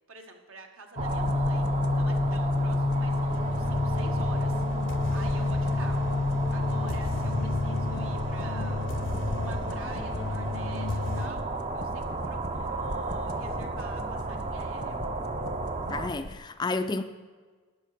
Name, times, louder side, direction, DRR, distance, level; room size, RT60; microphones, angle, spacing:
voice 1, 0.1-6.1 6.5-8.9 9.3-15.0, right 3 dB, 70° right, 1.5 m, -48 dB
sound 1, 1.0-16.4, left 1 dB, 90° left, 1.2 m, -43 dB
sound 2, 1.0-11.3, left 2 dB, 55° left, 0.6 m, -29 dB
sound 3, 1.0-16.1, right 2 dB, 30° right, 0.6 m, -34 dB
voice 2, 15.9-17.0, left 3 dB, 20° left, 0.3 m, -30 dB
14.0 x 10.5 x 4.9 m
head